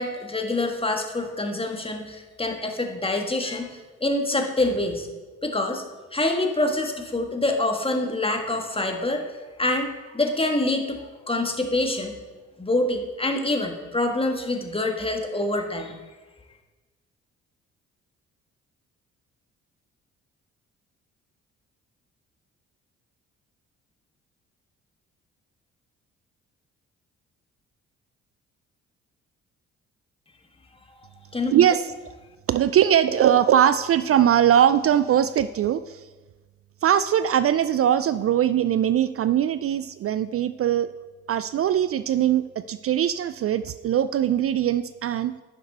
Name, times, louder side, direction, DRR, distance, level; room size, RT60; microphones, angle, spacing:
voice 1, 0.0-5.1 5.4-5.8 6.1-9.2 9.6-11.0 11.3-12.2 12.6-16.0 31.3-31.5, left 2 dB, 15° left, 4 dB, 1.6 m, -26 dB
voice 2, 31.5-31.9 32.5-36.0 36.8-40.9 41.3-45.3, right 10 dB, 40° right, 14 dB, 0.4 m, -21 dB
10.5 x 6.1 x 4.1 m, 1.2 s
hypercardioid pair, 45°, 35 cm